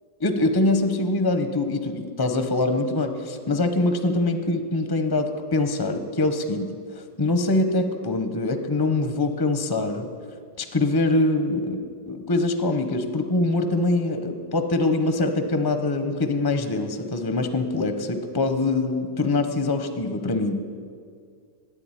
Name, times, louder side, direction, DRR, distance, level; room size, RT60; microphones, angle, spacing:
voice 1, 0.2-10.0 10.6-20.8, left 2 dB, 30° left, 7 dB, 0.4 m, -24 dB
11.0 x 8.2 x 9.8 m, 2.2 s
omnidirectional pair, 1.9 m